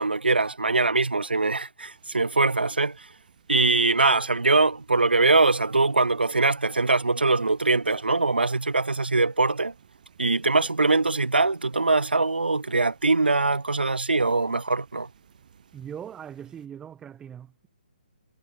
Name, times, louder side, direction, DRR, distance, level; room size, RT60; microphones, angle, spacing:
voice 1, 0.0-3.1 3.5-9.7 10.2-15.1, right 3 dB, 90° right, 0.7 m, -22 dB
sound 1, 1.8-16.7, right 8 dB, 55° right, 7.0 m, -58 dB
voice 2, 15.7-17.7, right 9 dB, 10° right, 1.4 m, -40 dB
figure-of-eight pair, 140°, 5 cm